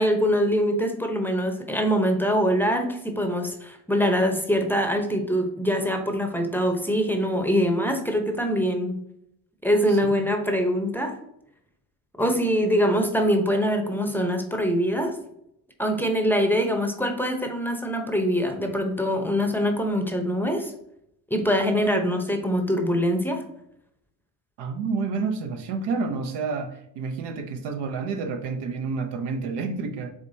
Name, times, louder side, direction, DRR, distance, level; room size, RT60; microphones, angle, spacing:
voice 1, 0.0-9.0 9.6-11.2 12.2-15.1 15.8-20.7 21.3-23.4, equal, 5° left, 4 dB, 0.7 m, -23 dB
voice 2, 9.9-10.3 24.6-30.1, right 4 dB, 70° right, 6 dB, 0.8 m, -29 dB
4.8 x 3.4 x 2.7 m, 0.75 s
supercardioid pair, 85°, 42 cm